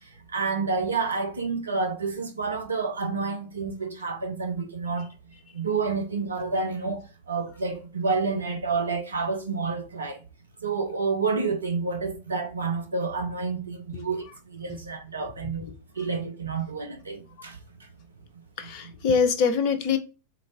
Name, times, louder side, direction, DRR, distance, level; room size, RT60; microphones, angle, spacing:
voice 1, 0.0-5.1 5.5-10.2 10.6-15.7 16.0-17.9, right 4 dB, 75° right, 0.6 m, -29 dB
voice 2, 18.6-20.0, left 6 dB, 45° left, 0.7 m, -24 dB
3.8 x 3.6 x 2.9 m
figure-of-eight pair, 90°, 0 cm